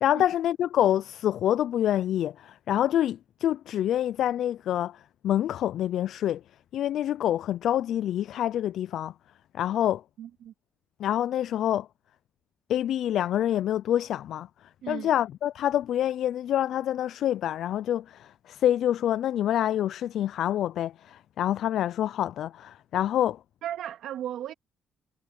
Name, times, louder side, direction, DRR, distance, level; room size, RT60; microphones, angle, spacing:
voice 1, 0.0-5.0 5.2-6.4 6.7-9.1 9.5-10.0 11.0-11.9 12.7-14.5 14.9-23.4, left 11 dB, 75° left, 0.3 m, -26 dB
voice 2, 10.2-10.5 14.8-15.1 23.6-24.5, right 11 dB, 80° right, 2.1 m, -35 dB
cardioid pair, 90°, 0 cm